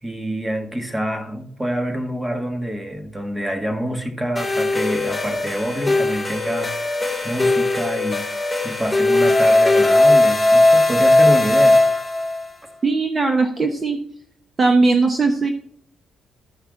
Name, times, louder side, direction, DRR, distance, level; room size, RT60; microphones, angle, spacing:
voice 1, 0.0-11.8, equal, 10° right, 5 dB, 1.6 m, -26 dB
sound 1, 4.4-12.4, left 2 dB, 5° left, 3.5 m, -18 dB
voice 2, 12.8-14.0 14.6-15.5, right 3 dB, 30° right, 5 dB, 1.0 m, -18 dB
13.5 x 5.6 x 3.7 m, 0.67 s
cardioid pair, 90°, 0 cm